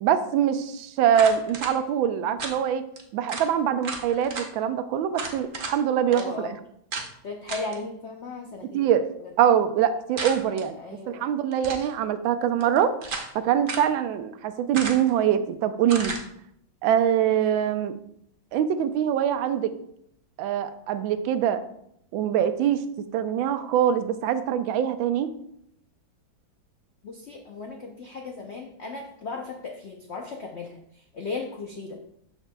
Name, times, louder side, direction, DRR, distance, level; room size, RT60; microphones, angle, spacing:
voice 1, 0.0-2.8 3.1-6.5 8.7-9.1 9.4-10.8 11.1-13.0 13.3-16.2 16.8-18.0 18.5-19.7 20.4-21.6 22.1-22.8 23.1-25.3, right 9 dB, 90° right, 11 dB, 1.4 m, -23 dB
sound 1, 1.1-1.7 2.4-2.6 3.0-3.1 3.3-3.5 3.8-4.5 5.1-5.8 6.1-6.2 6.9-7.1 7.5-7.8 10.2-10.6 11.5-11.9 12.6-13.3 13.7-13.9 14.7-15.2 15.9-16.2, right 3 dB, 50° right, 0.6 m, -33 dB
voice 2, 6.1-6.6 7.2-8.9 9.2-9.3 10.8-11.3 27.0-32.0, left 3 dB, 85° left, 2 dB, 0.6 m, -36 dB
12.5 x 4.5 x 2.3 m, 0.73 s
omnidirectional pair, 2.1 m